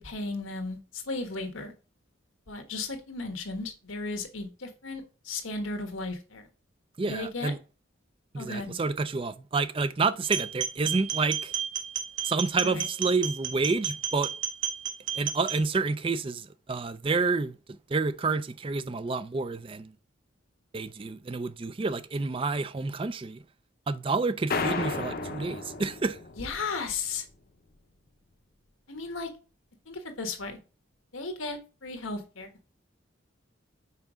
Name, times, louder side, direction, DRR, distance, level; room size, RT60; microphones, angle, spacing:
voice 1, 0.0-1.7 2.5-6.5 7.0-7.5 8.4-8.8 12.6-12.8 26.4-27.2 28.9-29.3 29.9-30.6 31.1-32.5, left 3 dB, 85° left, 1.4 m, -35 dB
voice 2, 7.0-7.6 8.3-11.5 12.2-14.3 15.1-19.9 20.7-23.4 23.9-26.2, right 4 dB, 25° right, 0.4 m, -29 dB
sound 1, 10.2-15.6, right 9 dB, 70° right, 1.2 m, -32 dB
sound 2, 24.5-26.9, left 4 dB, 45° left, 0.7 m, -33 dB
5.7 x 4.6 x 5.0 m
head